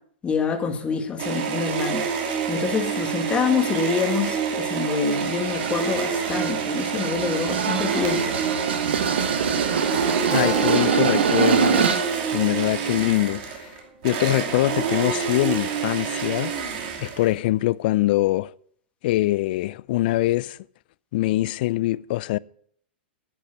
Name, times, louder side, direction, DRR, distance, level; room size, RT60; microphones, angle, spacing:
voice 1, 0.2-2.0 2.5-8.4, left 6 dB, 20° left, 1.7 m, -26 dB
sound 1, 1.2-17.5, right 6 dB, 55° right, 2.7 m, -27 dB
sound 2, 5.1-12.1, right 6 dB, 80° right, 1.4 m, -24 dB
voice 2, 10.3-11.9 12.3-13.7 14.0-16.5 17.0-18.5 19.0-20.6 21.1-22.4, left 16 dB, 55° left, 0.4 m, -23 dB
Keyboard (musical), 10.3-15.3, equal, 10° right, 2.2 m, -39 dB
10.5 x 8.4 x 6.5 m
hypercardioid pair, 120°, 6 cm